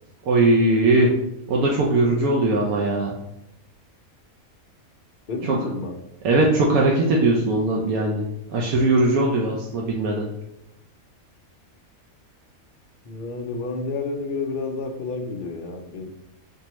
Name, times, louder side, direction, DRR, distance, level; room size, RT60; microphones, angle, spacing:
voice 1, 0.2-1.1 1.5-3.2 5.5-5.6 6.2-8.2 8.5-10.3, right 2 dB, 80° right, -2 dB, 1.1 m, -20 dB
voice 2, 5.3-5.9 13.0-16.1, left 3 dB, 60° left, 3 dB, 0.5 m, -30 dB
5.3 x 2.8 x 3.0 m, 0.84 s
omnidirectional pair, 1.5 m